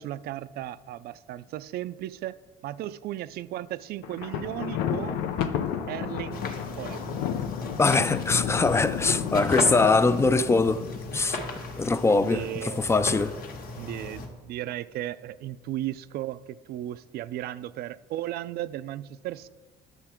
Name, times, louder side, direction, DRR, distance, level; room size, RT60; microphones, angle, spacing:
voice 1, 0.0-2.4 2.6-5.2 5.9-6.4 6.8-7.2 12.1-12.9 13.8-19.5, right 13 dB, 70° right, 0.4 m, -35 dB
Thunder, 4.0-11.3, left 8 dB, 90° left, 0.7 m, -32 dB
sound 1, 6.3-14.3, left 2 dB, 60° left, 1.7 m, -36 dB
voice 2, 7.8-10.8 11.1-11.4 11.8-13.3, left 3 dB, 15° left, 0.4 m, -22 dB
10.5 x 6.8 x 4.4 m
cardioid pair, 110°, 17 cm